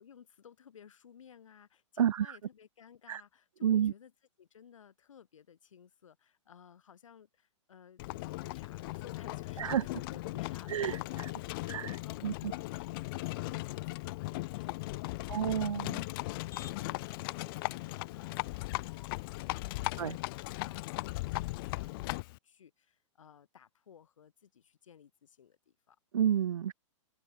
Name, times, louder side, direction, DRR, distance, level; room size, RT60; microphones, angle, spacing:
voice 1, 0.0-4.1 4.4-16.4 16.7-26.0, left 8 dB, 80° left, 3.4 m, -57 dB
voice 2, 2.0-2.4 3.1-3.2 3.6-3.9 9.6-9.8 10.7-11.0 11.7-12.5 15.3-16.0 20.0-20.2 26.1-26.7, right 9 dB, 80° right, 0.8 m, -30 dB
Livestock farm animals working animals, 8.0-22.4, left 21 dB, 45° left, 0.7 m, -38 dB
Motor vehicle (road), 16.2-21.7, left 8 dB, 20° left, 7.8 m, -58 dB
open air
hypercardioid pair, 130°, 16 cm